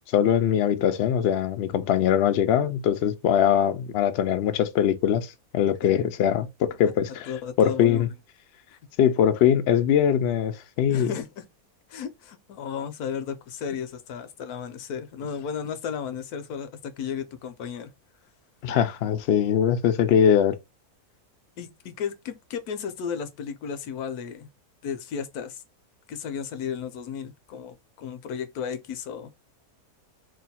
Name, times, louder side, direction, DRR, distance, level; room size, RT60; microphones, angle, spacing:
voice 1, 0.1-5.3 5.5-7.3 7.6-8.1 9.0-11.1 18.6-20.5, left 9 dB, 65° left, 0.6 m, -22 dB
voice 2, 7.3-8.0 8.7-8.8 10.9-11.4 11.9-17.9 21.6-24.5 24.8-25.6 26.1-29.5, left 7 dB, 85° left, 1.1 m, -34 dB
3.0 x 2.3 x 4.0 m
omnidirectional pair, 1.6 m